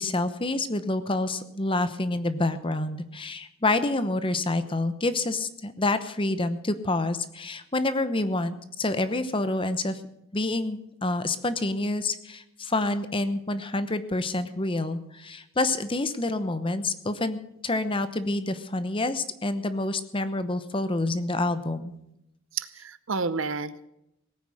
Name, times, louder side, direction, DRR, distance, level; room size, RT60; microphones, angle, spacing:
voice 1, 0.0-10.0 10.3-21.9, left 2 dB, 25° left, 12 dB, 0.9 m, -28 dB
voice 2, 22.5-23.9, right 4 dB, 65° right, 15 dB, 0.8 m, -30 dB
18.0 x 9.4 x 6.4 m, 0.83 s
head